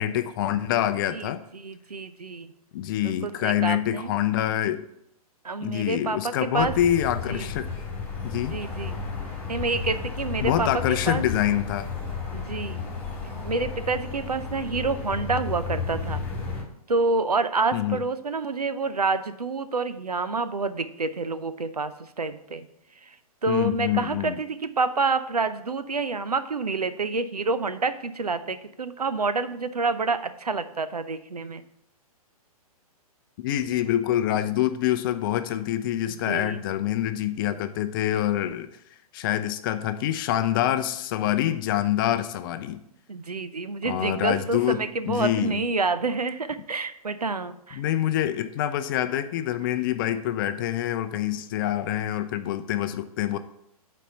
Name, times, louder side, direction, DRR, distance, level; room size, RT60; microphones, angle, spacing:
voice 1, 0.0-1.4 2.7-4.8 5.6-7.7 8.2-8.6 10.4-11.9 17.7-18.0 23.5-24.4 33.4-38.7 39.1-42.8 43.8-45.6 47.7-53.4, left 12 dB, 35° left, 10 dB, 0.5 m, -26 dB
voice 2, 1.1-2.5 3.0-4.1 5.4-6.7 7.3-7.5 8.4-9.0 9.5-11.2 12.3-12.8 13.4-16.2 16.9-22.7 23.0-23.2 23.4-31.6 36.1-36.6 43.1-47.8, right 3 dB, 85° right, 12 dB, 0.6 m, -28 dB
sound 1, 6.6-16.6, left 4 dB, 10° left, 1.9 m, -33 dB
8.1 x 4.2 x 5.6 m, 0.76 s
figure-of-eight pair, 120°, 19 cm